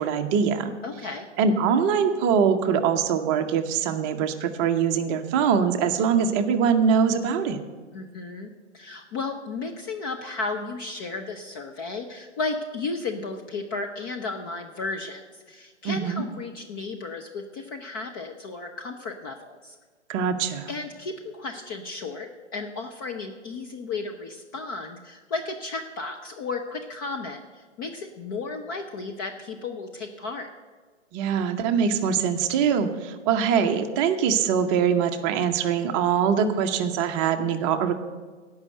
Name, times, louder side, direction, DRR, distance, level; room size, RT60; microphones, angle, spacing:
voice 1, 0.0-0.7 1.4-7.6 15.8-16.2 20.1-20.7 31.1-37.9, right 7 dB, 25° right, 6 dB, 0.7 m, -23 dB
voice 2, 0.8-1.3 7.9-19.8 20.7-30.5, left 3 dB, 20° left, 3 dB, 0.4 m, -34 dB
16.5 x 5.6 x 7.7 m, 1.4 s
hypercardioid pair, 125°, 36 cm